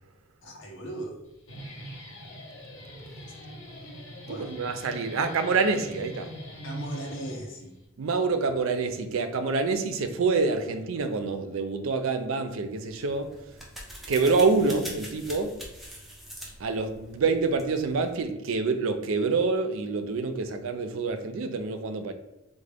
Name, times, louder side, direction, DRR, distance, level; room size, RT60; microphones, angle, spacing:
voice 1, 0.4-1.2 4.2-4.5 6.6-7.8, right 1 dB, 65° left, 1 dB, 0.7 m, -38 dB
Guitar, 1.2-7.9, right 1 dB, 80° left, 1.1 m, -42 dB
voice 2, 4.3-6.3 8.0-13.3 14.1-15.6 16.6-22.1, right 4 dB, 75° right, 8 dB, 0.4 m, -27 dB
sound 1, 12.8-18.1, equal, ahead, 0.6 m, -44 dB
3.6 x 2.1 x 3.4 m, 0.95 s
head